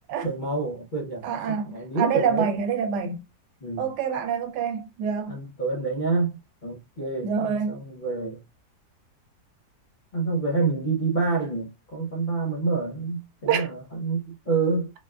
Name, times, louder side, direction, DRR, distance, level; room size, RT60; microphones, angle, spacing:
voice 1, 0.2-2.5 3.6-4.0 5.3-8.4 10.1-14.9, right 3 dB, 55° left, 0.5 m, -28 dB
voice 2, 1.2-1.7 2.0-3.2 3.8-5.4 7.2-7.8 13.4-13.7, right 7 dB, 85° right, 1.2 m, -26 dB
3.9 x 2.3 x 2.2 m
omnidirectional pair, 1.8 m